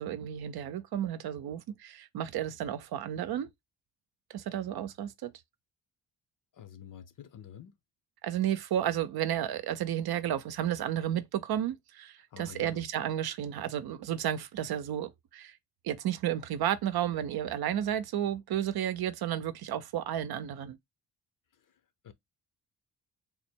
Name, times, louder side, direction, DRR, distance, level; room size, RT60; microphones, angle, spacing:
voice 1, 0.0-3.5 4.3-5.3 8.2-15.6 15.8-20.8, right 10 dB, 65° right, 0.6 m, -32 dB
voice 2, 6.5-7.8 12.3-12.9 21.5-22.1, left 9 dB, 55° left, 0.8 m, -49 dB
3.5 x 2.1 x 4.4 m
cardioid pair, 75°, 40 cm